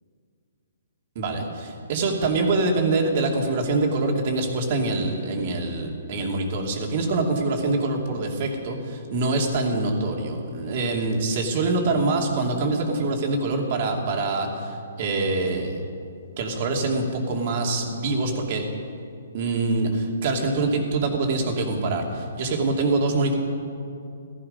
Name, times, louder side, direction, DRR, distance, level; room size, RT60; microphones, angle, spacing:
voice 1, 1.1-15.9 16.4-18.6 19.3-23.3, right 3 dB, 45° right, 1 dB, 2.5 m, -25 dB
15.5 x 14.0 x 5.5 m, 2.4 s
hypercardioid pair, 150°, 0 cm